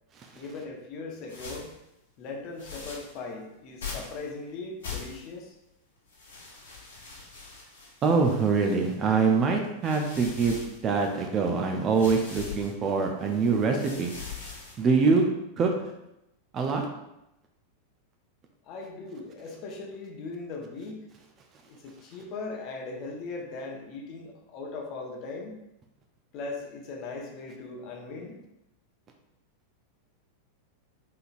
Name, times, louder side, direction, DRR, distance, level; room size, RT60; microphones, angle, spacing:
voice 1, 0.3-1.7 2.2-5.5 18.6-21.1 21.7-25.6 26.3-28.4, left 3 dB, 40° left, 1 dB, 0.8 m, -39 dB
sound 1, 1.3-1.8 2.6-3.2 3.8-4.2 4.8-5.4 6.1-9.1 9.6-11.3 11.9-12.7 13.2-14.9, left 5 dB, 60° left, 1.1 m, -42 dB
voice 2, 8.0-14.1 14.8-15.2 15.6-15.7 16.5-16.9, right 4 dB, 30° right, 3 dB, 0.6 m, -24 dB
4.3 x 3.9 x 2.6 m, 0.87 s
figure-of-eight pair, 90°, 0 cm